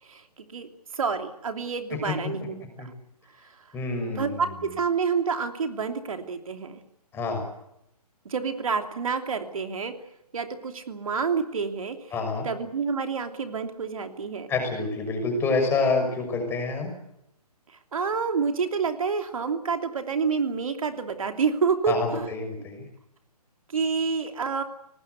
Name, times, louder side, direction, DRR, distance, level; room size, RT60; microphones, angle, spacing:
voice 1, 0.0-2.9 3.4-3.6 4.1-6.8 8.2-9.9 10.3-12.1 12.4-14.5 17.7-22.3 23.7-24.6, right 5 dB, 60° right, 6 dB, 3.0 m, -28 dB
voice 2, 3.7-4.4 7.1-7.4 12.1-12.5 14.5-16.9 21.9-22.9, left 3 dB, 10° left, 4 dB, 6.2 m, -27 dB
25.5 x 19.5 x 8.3 m, 0.80 s
figure-of-eight pair, 145°, 20 cm